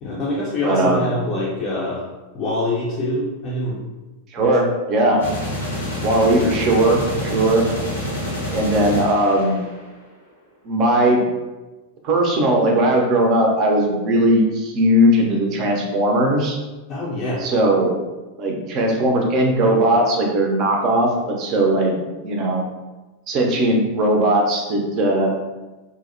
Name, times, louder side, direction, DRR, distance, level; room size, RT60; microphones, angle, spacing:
voice 1, 0.0-2.0 2.3-3.8 4.4-4.5 16.9-17.4, left 1 dB, 35° left, -6 dB, 0.5 m, -24 dB
voice 2, 0.6-1.1 4.3-5.2 6.0-7.7 8.5-9.6 10.6-11.2 12.0-16.6 17.4-17.9 18.4-22.0 22.2-22.6 23.3-25.3, right 1 dB, 35° right, 0 dB, 0.5 m, -18 dB
sound 1, 5.2-10.1, left 1 dB, 75° left, 0.7 m, -27 dB
2.5 x 2.0 x 2.5 m, 1.1 s
figure-of-eight pair, 90°, 0 cm